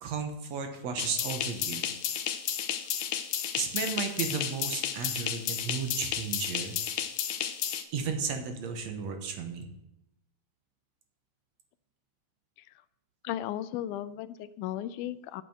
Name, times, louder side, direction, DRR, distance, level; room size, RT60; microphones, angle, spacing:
voice 1, 0.0-1.9 3.6-6.7 7.9-9.7, right 5 dB, 65° right, 5 dB, 2.2 m, -34 dB
sound 1, 1.0-7.8, left 9 dB, 70° left, 1.9 m, -32 dB
voice 2, 13.2-15.4, left 12 dB, 85° left, 14 dB, 2.0 m, -35 dB
8.9 x 6.8 x 7.3 m, 0.87 s
omnidirectional pair, 3.5 m